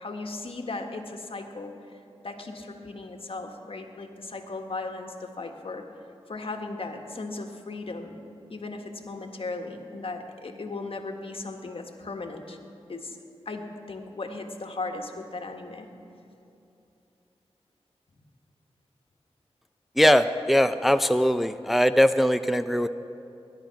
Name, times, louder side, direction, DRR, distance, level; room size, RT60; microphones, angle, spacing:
voice 1, 0.0-2.0 2.2-5.8 6.3-8.2 8.5-12.6 12.9-13.2 13.4-15.9, left 3 dB, 60° left, 4 dB, 1.6 m, -37 dB
voice 2, 20.0-22.9, equal, ahead, 10 dB, 0.4 m, -21 dB
21.0 x 10.5 x 5.8 m, 2.8 s
cardioid pair, 55°, 10 cm